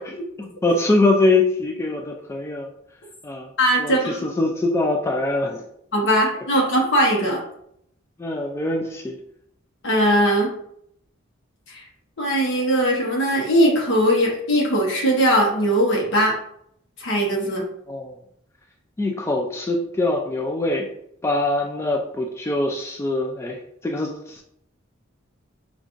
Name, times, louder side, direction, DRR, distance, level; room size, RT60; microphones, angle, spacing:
voice 1, 0.4-2.7 3.2-3.5 3.8-5.6 8.2-9.2 17.9-18.1 19.0-20.9 21.2-24.4, left 2 dB, 15° left, 1 dB, 0.3 m, -23 dB
voice 2, 3.6-4.2 5.9-7.4 9.8-10.5 11.7-11.8 12.2-16.3 17.0-17.6, equal, 60° left, -2 dB, 0.9 m, -20 dB
5.1 x 2.4 x 2.5 m, 0.72 s
head